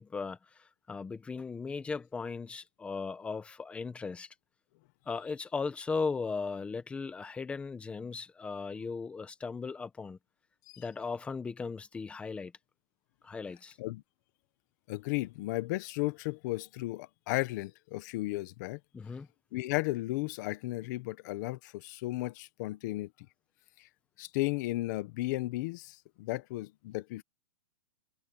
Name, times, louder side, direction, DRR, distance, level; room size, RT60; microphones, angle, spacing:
voice 1, 0.0-4.3 5.1-10.2 10.8-12.5 13.2-13.8 18.9-19.3, left 4 dB, 5° left, 1.1 m, -37 dB
voice 2, 14.9-18.8 19.5-23.1 23.8-23.9 24.2-27.2, left 19 dB, 35° left, 1.3 m, -34 dB
hypercardioid pair, 170°, 17 cm